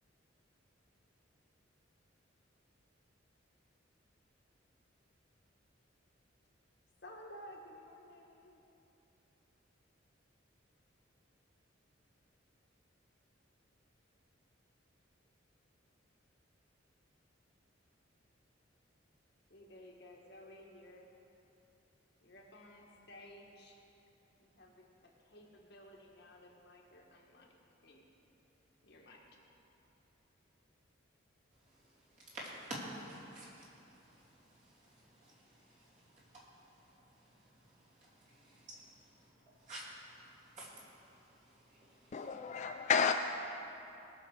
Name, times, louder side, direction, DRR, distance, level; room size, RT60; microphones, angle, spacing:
voice 1, 7.0-8.6 19.5-21.1 22.2-23.8 24.4-27.6 27.8-28.0 28.8-29.2, left 1 dB, 60° left, 0 dB, 1.6 m, -55 dB
voice 2, 32.2-37.3 37.7-39.3 39.6-42.3, right 1 dB, 40° right, -7 dB, 3.0 m, -51 dB
voice 3, 42.1-43.1, left 6 dB, 35° left, 6 dB, 0.3 m, -31 dB
19.5 x 6.5 x 4.9 m, 2.9 s
head